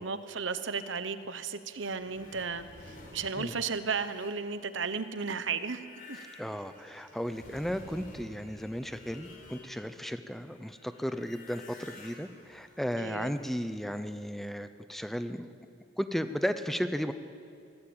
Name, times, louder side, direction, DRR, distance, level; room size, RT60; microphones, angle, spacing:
voice 1, 0.0-5.8 6.1-6.2 13.0-13.3, right 5 dB, 75° right, 11 dB, 1.1 m, -34 dB
sound 1, 1.8-10.1 10.3-13.7, left 2 dB, 50° left, 4.5 m, -52 dB
voice 2, 6.4-15.5 16.0-17.1, equal, ahead, 10 dB, 0.7 m, -34 dB
23.5 x 16.5 x 8.8 m, 2.4 s
head